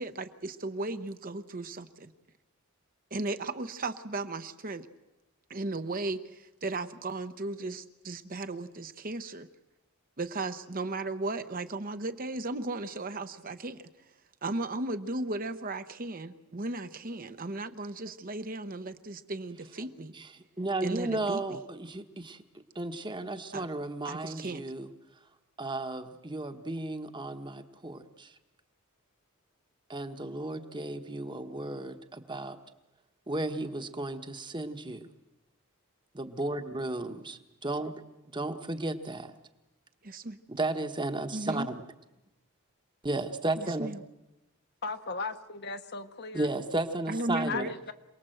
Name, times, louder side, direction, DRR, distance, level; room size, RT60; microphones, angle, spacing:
voice 1, 0.0-2.1 3.1-4.9 5.5-9.5 10.2-13.9 14.4-20.1 20.8-21.6 23.5-23.7 24.0-24.6 40.0-40.4 41.3-41.7 43.6-44.0 47.1-47.7, right 2 dB, 40° right, 9 dB, 0.9 m, -36 dB
voice 2, 20.6-22.4 22.7-24.9 25.6-28.3 29.9-32.6 33.3-35.1 36.1-38.1 38.3-39.3 40.5-41.8 43.0-43.9 46.3-47.7, right 2 dB, 20° right, 8 dB, 1.2 m, -34 dB
voice 3, 44.8-46.5 47.5-47.9, left 4 dB, 50° left, 8 dB, 1.1 m, -37 dB
27.5 x 19.0 x 7.9 m, 1.0 s
head